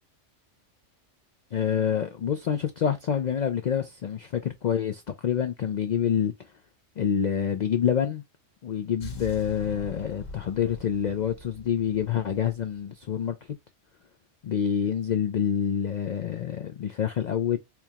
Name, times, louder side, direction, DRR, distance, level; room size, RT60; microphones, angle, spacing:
voice 1, 1.5-6.3 7.0-8.2 8.6-13.4 14.4-17.6, left 8 dB, 70° left, 0.4 m, -27 dB
sound 1, 9.0-13.1, right 1 dB, 90° left, 1.3 m, -43 dB
4.6 x 2.8 x 2.2 m
omnidirectional pair, 1.3 m